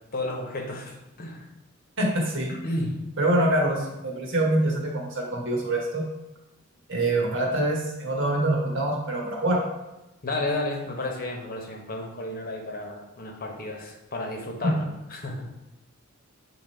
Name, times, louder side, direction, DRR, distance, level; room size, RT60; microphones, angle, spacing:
voice 1, 0.1-1.4 2.6-2.9 10.2-14.8 15.1-15.4, left 2 dB, 45° left, 1 dB, 1.0 m, -32 dB
voice 2, 2.0-2.5 3.2-6.0 6.9-9.6 14.6-14.7, right 1 dB, 60° right, -1 dB, 1.4 m, -25 dB
7.5 x 3.0 x 4.3 m, 0.98 s
head